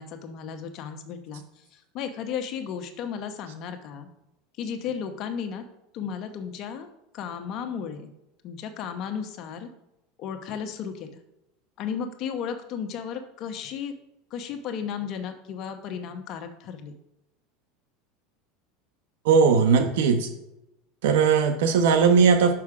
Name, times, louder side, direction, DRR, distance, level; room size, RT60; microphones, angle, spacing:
voice 1, 0.0-4.1 4.6-5.6 5.9-6.9 7.1-8.1 8.4-9.7 10.2-11.2 11.8-13.9 14.3-16.9, left 7 dB, 50° left, 7 dB, 0.9 m, -34 dB
voice 2, 19.2-20.3 21.0-22.5, right 6 dB, 80° right, 7 dB, 1.0 m, -19 dB
6.1 x 6.0 x 4.8 m, 0.89 s
supercardioid pair, 120°, 0 cm